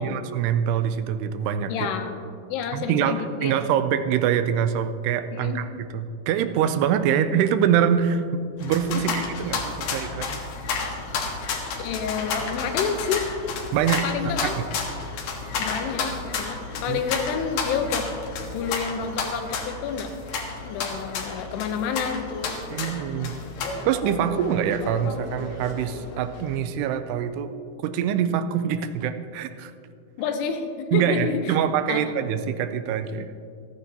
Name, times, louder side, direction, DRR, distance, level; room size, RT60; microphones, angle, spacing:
voice 1, 0.0-1.9 2.7-10.4 13.7-14.6 16.9-17.0 22.7-23.3 23.9-27.5 27.8-29.7 30.9-33.3, right 8 dB, 85° right, 10 dB, 2.6 m, -24 dB
voice 2, 1.7-2.2 2.5-3.6 5.3-5.6 7.1-7.2 8.9-9.0 11.8-13.3 14.0-14.6 15.6-18.1 18.5-20.1 20.6-22.6 30.2-31.6 31.9-32.0, left 6 dB, 80° left, 7 dB, 3.0 m, -29 dB
sound 1, 8.6-26.6, left 4 dB, 65° left, 2.8 m, -32 dB
27.5 x 9.5 x 2.9 m, 2.4 s
omnidirectional pair, 4.8 m